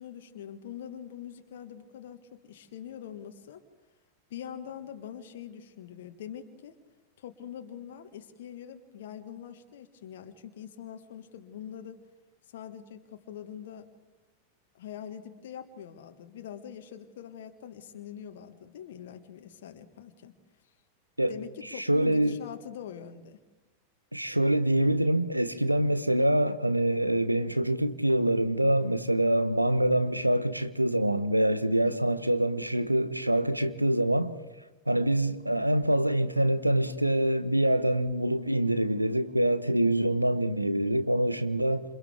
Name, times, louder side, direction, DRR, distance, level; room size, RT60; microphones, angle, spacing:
voice 1, 0.0-3.6 4.3-6.8 7.2-12.0 12.5-13.9 14.7-20.3 21.3-23.4 31.8-32.0, left 9 dB, 55° left, 1.4 m, -43 dB
voice 2, 21.7-22.4 24.1-34.4 34.9-41.8, right 1 dB, 85° right, 1.0 m, -25 dB
28.5 x 27.5 x 3.5 m
figure-of-eight pair, 90°, 0 cm